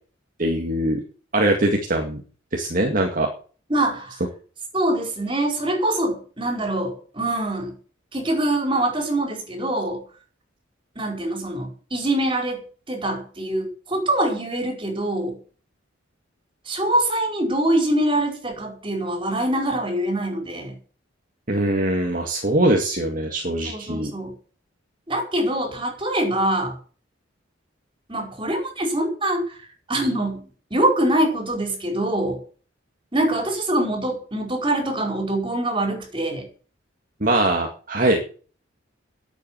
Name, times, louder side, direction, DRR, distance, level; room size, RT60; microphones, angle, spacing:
voice 1, 0.4-1.0 1.3-2.2 2.5-3.3 21.5-24.1 37.2-38.2, right 1 dB, 45° right, 2 dB, 2.1 m, -22 dB
voice 2, 3.7-4.2 4.7-7.7 8.1-10.0 10.9-15.4 16.7-20.8 23.6-24.3 25.1-26.8 28.1-29.6 29.9-30.4 30.7-32.4 33.1-36.5, right 1 dB, 25° right, 2 dB, 5.0 m, -24 dB
11.0 x 8.4 x 9.5 m, 0.41 s
head